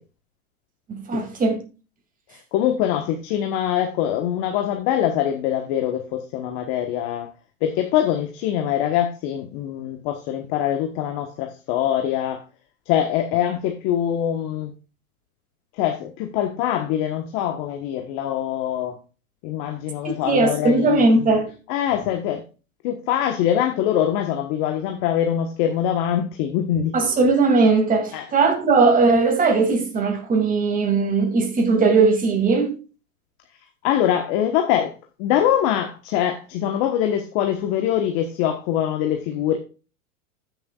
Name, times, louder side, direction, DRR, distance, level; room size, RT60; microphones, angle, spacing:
voice 1, 0.9-1.6 20.0-21.5 26.9-32.8, right 4 dB, 20° right, 2.6 m, -19 dB
voice 2, 2.3-7.3 7.6-12.4 12.8-14.7 15.7-19.0 19.4-21.4 21.7-22.4 22.8-26.9 28.1-28.3 33.8-34.9 35.2-39.6, left 10 dB, 40° left, 1.3 m, -23 dB
15.0 x 6.9 x 2.4 m
hypercardioid pair, 135°, 44 cm